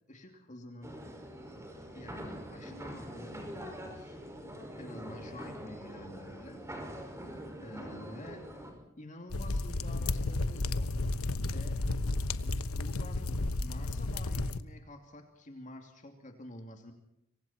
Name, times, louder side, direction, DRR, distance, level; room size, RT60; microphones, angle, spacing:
voice 1, 0.1-0.9 1.9-4.2 4.8-6.6 7.6-8.4 9.0-10.9 11.5-11.8 12.7-13.3 13.6-16.9, left 1 dB, 35° left, 4 dB, 2.8 m, -48 dB
sound 1, 0.8-8.7, equal, 15° right, 5.6 m, -44 dB
sound 2, 9.3-14.6, left 2 dB, 85° left, 1.1 m, -32 dB
27.0 x 24.0 x 4.4 m, 0.84 s
head